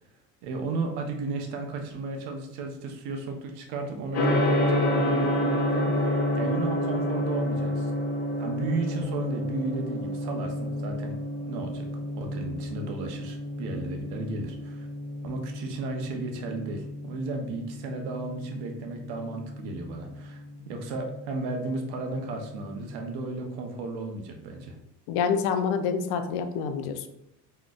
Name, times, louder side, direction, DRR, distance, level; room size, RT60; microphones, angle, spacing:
voice 1, 0.4-7.9 8.4-11.9 12.2-14.9 15.2-24.7, right 3 dB, 80° right, 3 dB, 0.8 m, -34 dB
Gong, 4.1-23.1, left 1 dB, 40° left, 0.8 m, -30 dB
voice 2, 25.1-27.1, left 6 dB, 80° left, 8 dB, 0.5 m, -27 dB
3.9 x 3.2 x 2.4 m, 0.82 s
cardioid pair, 105°, 38 cm